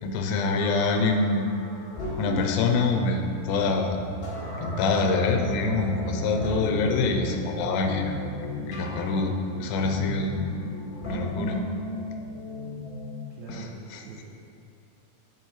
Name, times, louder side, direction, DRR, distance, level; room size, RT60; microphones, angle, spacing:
voice 1, 0.0-1.5 2.2-4.0 4.6-8.1 8.7-10.6 11.0-11.6 13.5-14.0, left 3 dB, 90° left, 4 dB, 2.4 m, -26 dB
sound 1, 0.6-13.2, left 2 dB, 25° left, 1.1 m, -36 dB
sound 2, 2.7-12.4, right 1 dB, 45° right, 1.1 m, -37 dB
voice 2, 13.3-14.2, right 3 dB, 75° right, -6 dB, 2.0 m, -42 dB
7.7 x 7.0 x 3.1 m, 2.4 s
omnidirectional pair, 4.1 m